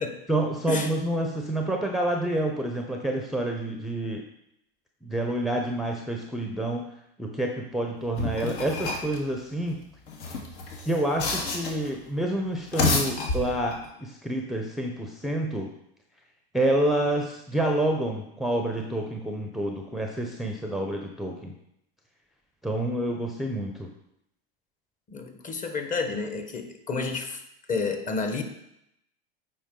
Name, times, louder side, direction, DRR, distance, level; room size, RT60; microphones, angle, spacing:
voice 1, 0.3-4.2 5.0-6.8 7.2-9.8 10.8-15.7 16.5-21.5 22.6-23.9, right 1 dB, ahead, 2 dB, 0.7 m, -28 dB
sound 1, 8.2-9.2 10.1-11.9 12.6-13.9, left 3 dB, 65° left, 1.8 m, -29 dB
voice 2, 25.1-27.4 27.7-28.4, left 4 dB, 25° left, 5 dB, 1.2 m, -30 dB
8.4 x 4.7 x 3.8 m, 0.79 s
hypercardioid pair, 100°, 30 cm